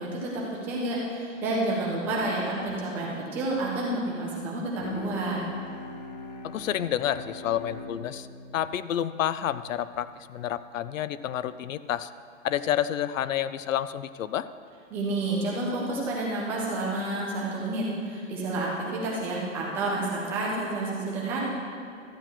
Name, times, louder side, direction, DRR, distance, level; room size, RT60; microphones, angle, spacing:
voice 1, 0.0-5.4 14.9-21.4, right 2 dB, 5° right, -5 dB, 0.4 m, -30 dB
Bowed string instrument, 4.8-10.2, left 2 dB, 35° left, 0.7 m, -41 dB
voice 2, 6.4-8.3 8.5-12.1 12.4-14.5, left 11 dB, 80° left, 14 dB, 0.6 m, -29 dB
13.0 x 8.9 x 4.4 m, 2.3 s
hypercardioid pair, 160°, 39 cm